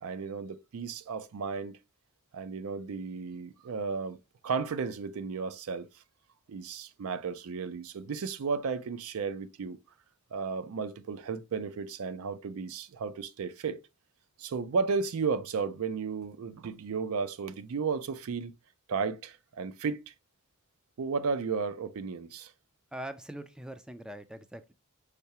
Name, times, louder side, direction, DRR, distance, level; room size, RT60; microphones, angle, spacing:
voice 1, 0.0-1.8 2.3-4.2 4.4-5.9 6.5-9.8 10.3-13.8 14.4-18.5 18.9-20.1 21.0-22.5, right 5 dB, 70° right, 0.4 m, -34 dB
voice 2, 22.9-24.7, right 1 dB, 5° right, 0.3 m, -42 dB
5.5 x 3.4 x 2.8 m
head